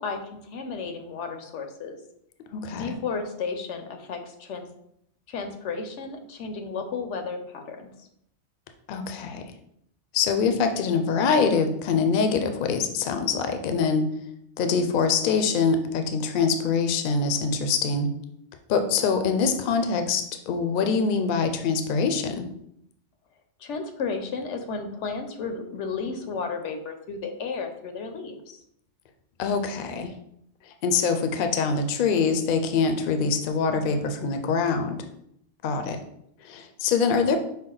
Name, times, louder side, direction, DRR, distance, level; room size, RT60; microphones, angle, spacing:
voice 1, 0.0-2.0 2.8-4.6 5.3-7.9 23.6-28.6, left 4 dB, 85° left, 6 dB, 0.9 m, -33 dB
voice 2, 2.5-3.0 8.9-9.4 10.1-14.0 14.6-18.1 18.7-22.5 29.4-30.1 30.7-35.0 35.6-36.0 36.4-37.4, left 5 dB, 60° left, 7 dB, 0.6 m, -24 dB
5.3 x 2.2 x 3.8 m, 0.73 s
omnidirectional pair, 1.2 m